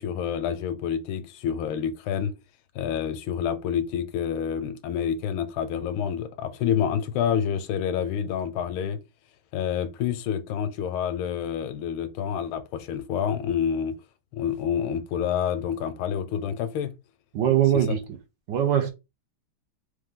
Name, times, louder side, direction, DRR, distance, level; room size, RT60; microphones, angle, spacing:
voice 1, 0.0-2.3 2.7-9.0 9.5-14.0 14.3-16.9 17.7-18.0, left 8 dB, 85° left, 1.4 m, -28 dB
voice 2, 17.3-18.0 18.5-18.9, right 11 dB, 65° right, 1.2 m, -21 dB
3.9 x 3.2 x 3.7 m
omnidirectional pair, 2.3 m